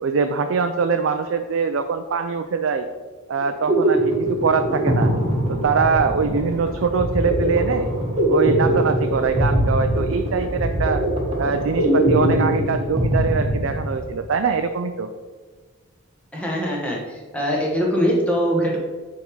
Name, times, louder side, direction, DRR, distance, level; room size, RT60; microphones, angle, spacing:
voice 1, 0.0-2.9 3.3-5.1 5.5-7.9 8.3-11.0 11.4-15.1, right 5 dB, 65° right, 7 dB, 0.4 m, -23 dB
sound 1, 3.4-14.2, right 1 dB, 30° right, 1.5 m, -22 dB
voice 2, 16.3-18.8, equal, 5° left, -3 dB, 1.3 m, -22 dB
9.4 x 3.6 x 4.7 m, 1.5 s
head